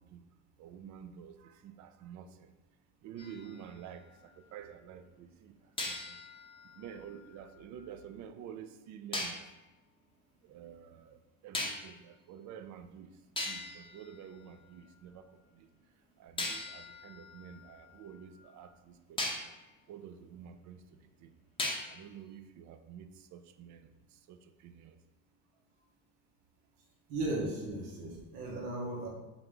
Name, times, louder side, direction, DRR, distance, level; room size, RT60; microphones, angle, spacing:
voice 1, 0.6-2.5 3.0-4.0 4.5-5.5 5.8-6.2 6.8-9.4 10.4-11.2 11.4-13.1 13.5-15.2 15.6-15.7 16.2-19.4 19.9-20.8 21.2-21.3 21.9-23.9 24.3-24.4 24.6-25.0, right 8 dB, 45° right, 9 dB, 0.5 m, -49 dB
sound 1, 3.2-4.6 5.8-7.9 9.1-9.5 11.5-12.1 12.9-13.0 13.4-15.0 16.4-18.5 19.2-19.6 21.6-22.2, left 2 dB, 15° left, 0.7 m, -40 dB
voice 2, 27.1-29.1, right 1 dB, 75° right, -3 dB, 1.2 m, -36 dB
3.8 x 2.9 x 3.4 m, 1.0 s
supercardioid pair, 90°, 40 cm